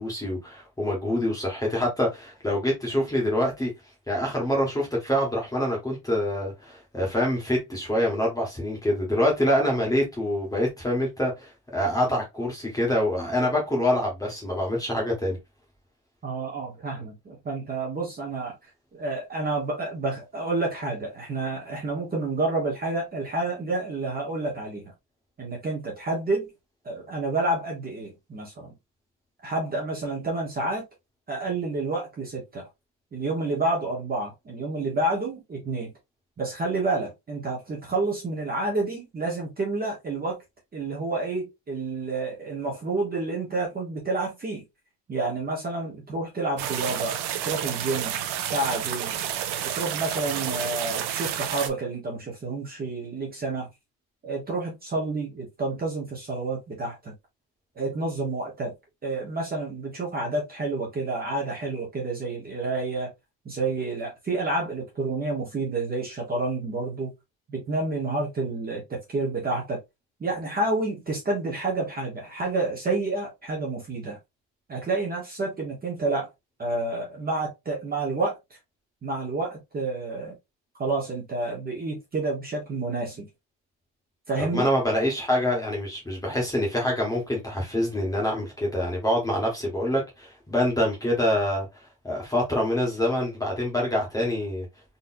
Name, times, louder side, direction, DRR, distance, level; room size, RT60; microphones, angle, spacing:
voice 1, 0.0-3.7 4.1-15.4 84.4-91.7 92.0-94.6, left 1 dB, 10° left, 1.5 m, -25 dB
voice 2, 16.2-18.5 18.9-24.8 25.4-26.5 26.8-28.7 29.4-30.8 31.3-32.7 33.1-35.9 36.4-40.4 40.7-44.6 45.1-47.2 47.4-49.2 49.6-53.7 54.2-57.1 57.7-58.7 59.0-63.1 63.4-67.1 67.5-69.8 70.2-74.2 74.7-76.3 76.6-78.6 79.0-80.3 80.8-83.3 84.3-84.7, right 2 dB, 20° right, 1.3 m, -29 dB
sound 1, 46.6-51.7, right 10 dB, 60° right, 0.9 m, -30 dB
4.2 x 3.3 x 2.6 m
cardioid pair, 175°, 46 cm